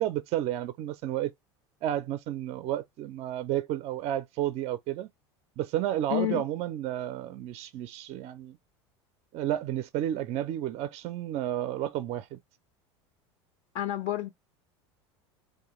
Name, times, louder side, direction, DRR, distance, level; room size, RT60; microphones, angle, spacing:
voice 1, 0.0-1.3 1.8-5.1 5.6-8.6 9.3-12.4, right 12 dB, 45° right, 0.4 m, -31 dB
voice 2, 6.1-6.4 13.7-14.3, left 13 dB, 50° left, 0.4 m, -29 dB
2.9 x 2.2 x 2.9 m
hypercardioid pair, 85°, 15 cm